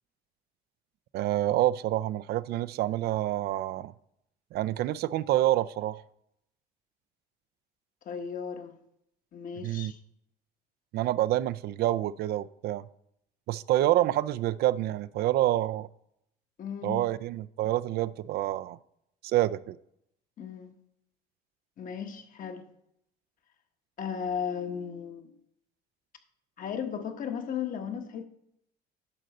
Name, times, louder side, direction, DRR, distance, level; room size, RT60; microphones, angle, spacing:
voice 1, 1.1-3.9 4.5-6.0 9.6-9.9 10.9-12.8 13.5-15.9 16.8-18.8 19.2-19.8, right 14 dB, 70° right, 0.4 m, -27 dB
voice 2, 8.0-8.7 9.3-10.0 16.6-17.0 20.4-20.7 21.8-22.6 24.0-25.3 26.6-28.2, left 7 dB, 55° left, 1.2 m, -35 dB
10.5 x 4.1 x 6.5 m
cardioid pair, 110°, 17 cm